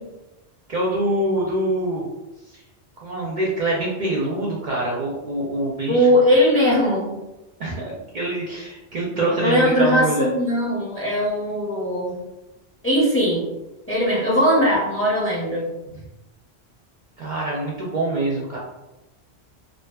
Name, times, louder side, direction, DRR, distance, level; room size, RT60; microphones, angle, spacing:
voice 1, 0.7-2.0 3.0-6.1 7.6-10.3 17.2-18.6, right 2 dB, 60° right, -4 dB, 0.5 m, -25 dB
voice 2, 5.9-7.1 9.3-12.2 12.8-13.4 13.9-15.7, equal, 20° left, -6 dB, 0.4 m, -19 dB
2.5 x 2.4 x 2.2 m, 0.99 s
omnidirectional pair, 1.1 m